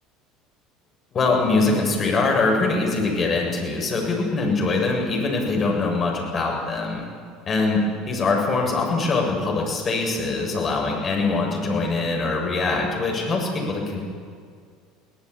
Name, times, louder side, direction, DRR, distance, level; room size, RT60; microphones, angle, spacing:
voice 1, 1.1-7.0 7.5-14.1, left 3 dB, 35° left, 0 dB, 7.1 m, -23 dB
24.0 x 18.0 x 8.6 m, 2.1 s
figure-of-eight pair, 65°, 0 cm